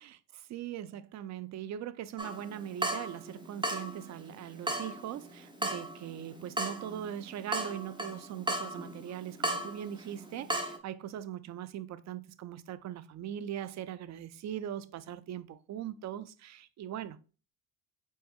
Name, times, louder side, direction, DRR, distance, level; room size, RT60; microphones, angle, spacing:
voice 1, 0.0-17.2, right 10 dB, 45° right, 0.5 m, -41 dB
Water tap faucet / Drip, 2.2-10.8, right 1 dB, 10° right, 0.9 m, -37 dB
4.7 x 4.2 x 2.2 m
supercardioid pair, 75°, 41 cm